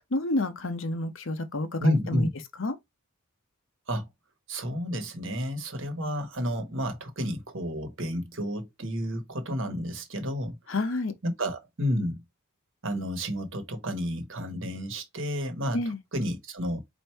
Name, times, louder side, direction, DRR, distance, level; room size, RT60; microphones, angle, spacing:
voice 1, 0.1-2.3 2.6-2.7 10.7-11.1 15.7-16.0, left 2 dB, 60° left, 0.8 m, -29 dB
voice 2, 1.8-2.3 3.9-4.1 4.5-10.6 11.2-12.2 12.8-15.8 16.1-16.8, equal, 60° right, 1.2 m, -30 dB
4.4 x 2.6 x 4.5 m
head